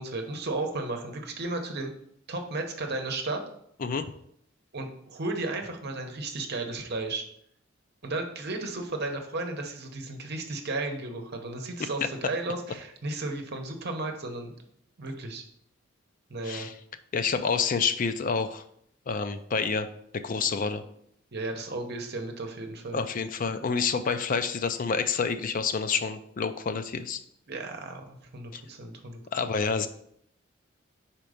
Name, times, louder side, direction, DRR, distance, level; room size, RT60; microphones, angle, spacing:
voice 1, 0.0-1.9 2.3-3.4 4.7-7.2 8.0-14.5 15.0-15.4 16.3-16.7 21.3-23.0 27.5-29.2, right 2 dB, 55° right, 4 dB, 1.0 m, -34 dB
voice 2, 17.1-18.6 19.1-19.9 20.1-20.8 22.9-27.2 28.5-28.6 29.3-29.9, left 5 dB, 45° left, 10 dB, 0.4 m, -28 dB
5.2 x 4.4 x 5.0 m, 0.70 s
head